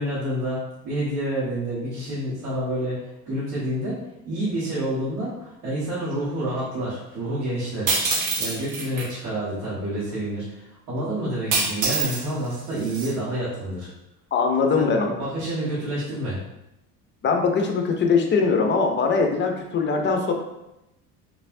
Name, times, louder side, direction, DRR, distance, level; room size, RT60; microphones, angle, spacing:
voice 1, 0.0-4.0 4.2-8.0 8.4-13.9 14.7-16.4, right 1 dB, 80° right, -10 dB, 1.3 m, -28 dB
sound 1, 7.9-9.1 11.5-12.2 12.5-13.1, right 3 dB, 40° right, 0.9 m, -25 dB
voice 2, 14.3-15.2 17.2-20.3, left 4 dB, 25° left, 3 dB, 0.5 m, -21 dB
3.1 x 2.6 x 2.6 m, 0.90 s
hypercardioid pair, 75°, 46 cm